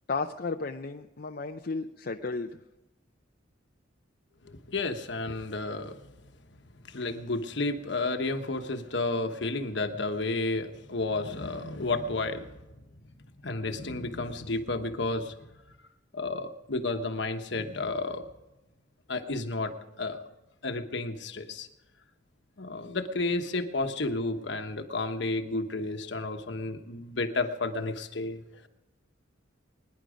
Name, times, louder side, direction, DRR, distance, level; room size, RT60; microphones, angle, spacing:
voice 1, 0.1-2.6, left 3 dB, 50° left, 4 dB, 0.6 m, -33 dB
voice 2, 4.4-6.0 6.8-12.7 13.4-15.3 16.1-18.3 19.1-20.3 20.6-21.7 22.6-28.7, left 2 dB, 65° left, 7 dB, 1.2 m, -32 dB
22.5 x 10.5 x 5.1 m, 1.0 s
head